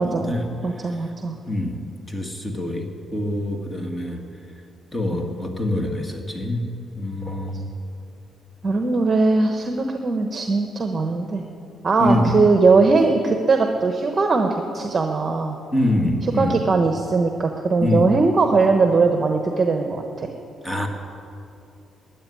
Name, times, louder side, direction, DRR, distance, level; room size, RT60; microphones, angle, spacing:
voice 1, 0.0-0.3 0.6-1.4 8.6-11.4 11.8-15.6 16.4-20.3, right 3 dB, 35° right, 4 dB, 1.1 m, -20 dB
voice 2, 1.5-1.8 2.1-2.9 3.1-4.2 4.9-6.6 7.0-7.7 12.0-12.3 15.7-16.6 17.8-18.1 20.6-20.9, left 1 dB, 15° left, 3 dB, 2.0 m, -24 dB
13.5 x 9.4 x 10.0 m, 2.7 s
cardioid pair, 90°, 0 cm